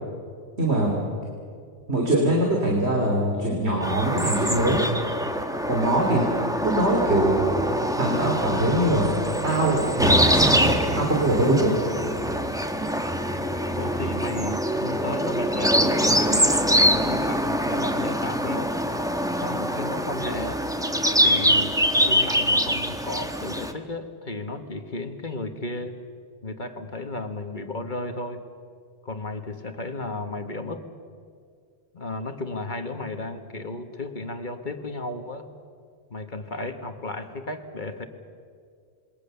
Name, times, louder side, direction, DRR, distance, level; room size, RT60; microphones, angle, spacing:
voice 1, 0.6-0.9 1.9-4.8 5.7-7.5 8.0-9.1 9.4-11.7, right 1 dB, 70° right, -1 dB, 3.6 m, -23 dB
sound 1, 3.8-23.7, equal, 5° right, 1.2 m, -24 dB
voice 2, 13.7-18.7 19.4-20.6 21.2-21.8 22.0-25.9 26.4-28.4 29.0-30.9 31.9-35.5 36.1-38.1, left 2 dB, 45° left, 7 dB, 1.5 m, -34 dB
27.5 x 22.0 x 6.9 m, 2.2 s
omnidirectional pair, 1.2 m